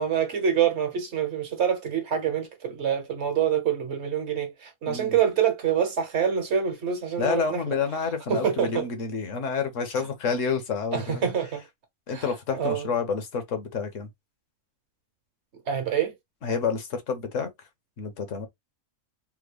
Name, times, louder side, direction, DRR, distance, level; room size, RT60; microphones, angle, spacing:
voice 1, 0.0-8.9 10.9-11.6 12.1-12.2 12.5-12.9 15.7-16.1, right 8 dB, 55° right, 1.2 m, -26 dB
voice 2, 4.9-5.2 7.2-11.2 12.1-14.1 16.4-17.5 18.0-18.5, left 5 dB, 65° left, 1.2 m, -29 dB
3.6 x 2.2 x 3.2 m
omnidirectional pair, 1.4 m